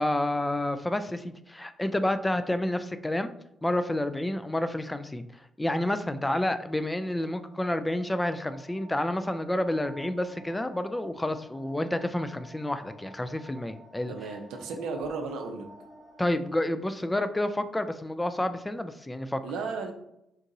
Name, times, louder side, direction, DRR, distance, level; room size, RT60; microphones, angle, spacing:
voice 1, 0.0-3.3 3.6-5.2 5.6-14.1 16.2-19.4, left 1 dB, 15° left, 10 dB, 0.3 m, -29 dB
sound 1, 6.0-16.3, right 1 dB, 5° right, 0.9 m, -52 dB
voice 2, 14.1-15.7 19.4-19.9, right 4 dB, 75° right, 4 dB, 0.5 m, -34 dB
3.9 x 2.5 x 2.6 m, 0.82 s
hypercardioid pair, 45°, 0 cm